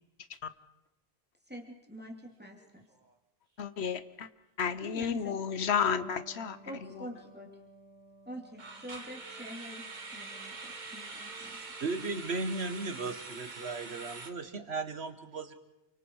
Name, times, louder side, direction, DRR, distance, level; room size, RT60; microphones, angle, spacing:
voice 1, 1.5-2.9 4.8-5.4 6.7-7.5 8.3-9.8 10.1-11.6, equal, 10° right, 0 dB, 2.8 m, -45 dB
sound 1, 2.4-2.7 2.9-3.1 3.6-3.7 8.6-14.3, right 3 dB, 45° right, 1.5 m, -44 dB
voice 2, 3.6-4.3 4.6-7.1, left 7 dB, 90° left, 13 dB, 1.2 m, -32 dB
Electric guitar, 5.9-13.0, right 2 dB, 30° right, 6.4 m, -58 dB
voice 3, 11.8-15.5, right 3 dB, 90° right, 8 dB, 1.8 m, -36 dB
28.5 x 24.5 x 4.7 m, 0.95 s
omnidirectional pair, 1.1 m